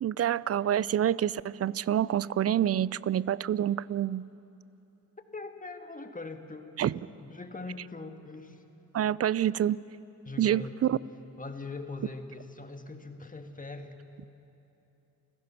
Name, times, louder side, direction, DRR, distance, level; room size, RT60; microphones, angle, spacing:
voice 1, 0.0-4.3 6.8-7.0 8.9-9.8 10.4-11.0, right 10 dB, 45° right, 21 dB, 0.4 m, -27 dB
voice 2, 5.3-8.6 10.2-11.0 11.4-14.0, left 3 dB, 20° left, 6 dB, 1.8 m, -42 dB
29.0 x 16.0 x 6.0 m, 3.0 s
cardioid pair, 65°, 36 cm